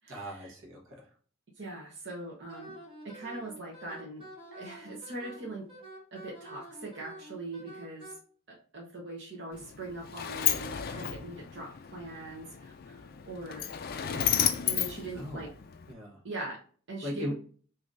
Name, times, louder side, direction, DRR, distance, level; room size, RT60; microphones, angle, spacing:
voice 1, 0.1-1.1 15.1-15.5 15.9-16.2 17.0-17.3, equal, 80° right, -1 dB, 1.2 m, -39 dB
voice 2, 1.6-2.7 3.0-4.2 4.5-5.7 6.1-8.1 8.7-13.7 14.1-15.5 16.2-16.6 16.9-17.3, right 2 dB, 55° right, -4 dB, 0.9 m, -41 dB
Wind instrument woodwind instrument, 2.5-8.1, right 1 dB, 25° right, 1.4 m, -47 dB
Sliding door, 9.5-15.9, left 10 dB, 45° left, 0.3 m, -33 dB
3.7 x 2.8 x 2.4 m, 0.43 s
head